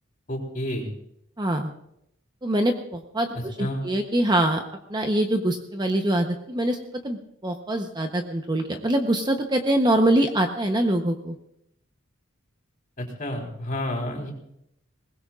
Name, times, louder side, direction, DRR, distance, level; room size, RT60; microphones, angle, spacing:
voice 1, 0.3-0.9 3.3-3.8 13.0-14.3, left 1 dB, 40° left, 1 dB, 3.9 m, -30 dB
voice 2, 1.4-1.7 2.4-4.6 4.9-6.8 7.0-11.4, right 1 dB, 20° right, 4 dB, 0.9 m, -24 dB
21.5 x 20.0 x 2.5 m, 0.78 s
head